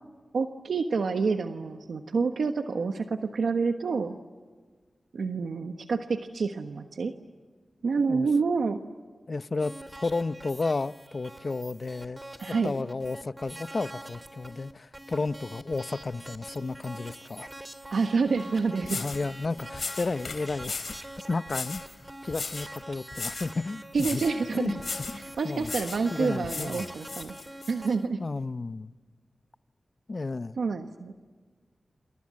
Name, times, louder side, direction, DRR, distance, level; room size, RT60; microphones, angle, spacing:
voice 1, 0.3-4.2 5.1-7.1 7.8-8.8 12.4-12.7 17.9-19.1 23.9-24.8 25.2-27.3 27.7-28.2 30.6-31.1, right 4 dB, 90° right, 1.3 m, -28 dB
voice 2, 9.3-9.7 10.0-12.2 12.5-17.5 18.9-20.8 21.3-21.8 22.2-24.2 24.5-24.8 25.1-25.7 26.1-26.9 28.2-28.9 30.1-30.6, left 3 dB, 55° left, 0.8 m, -32 dB
sound 1, 9.6-28.1, right 1 dB, 20° right, 2.4 m, -45 dB
sound 2, 18.4-18.5 18.8-19.3 19.7-21.0 21.5-21.9 22.3-22.7 23.1-23.6 23.9-24.4 24.8-25.2 25.6-26.1 26.4-27.7, left 4 dB, 70° left, 3.1 m, -37 dB
28.0 x 28.0 x 7.6 m
cardioid pair, 50°, 0 cm